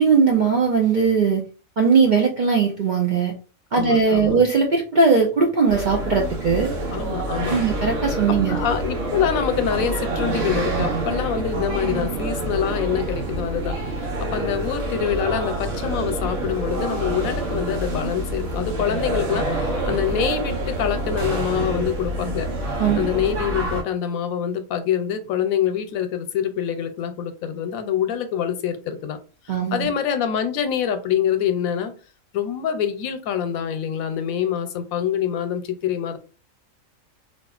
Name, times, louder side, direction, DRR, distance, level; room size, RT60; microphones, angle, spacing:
voice 1, 0.0-1.4 1.8-3.3 3.7-6.7 7.5-8.6 22.8-23.3 29.5-29.9, right 5 dB, 65° right, 0.4 m, -19 dB
voice 2, 3.7-4.4 6.9-7.6 8.5-22.5 22.9-29.2 29.4-31.9 32.3-36.2, left 8 dB, 90° left, 1.0 m, -25 dB
sound 1, 5.7-23.8, right 2 dB, 80° right, 1.3 m, -27 dB
4.0 x 2.3 x 2.4 m
omnidirectional pair, 1.4 m